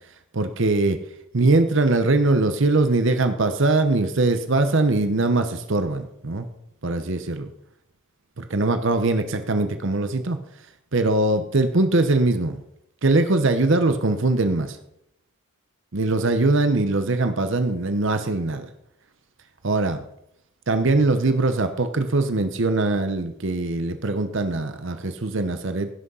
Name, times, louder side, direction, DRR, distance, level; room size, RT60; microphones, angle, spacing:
voice 1, 0.3-1.0 1.3-6.5 6.8-7.5 8.4-10.4 10.9-12.6 13.0-14.8 15.9-18.7 19.6-20.0 20.7-25.9, right 2 dB, 55° right, 8 dB, 0.8 m, -21 dB
16.5 x 6.2 x 5.5 m, 0.78 s
head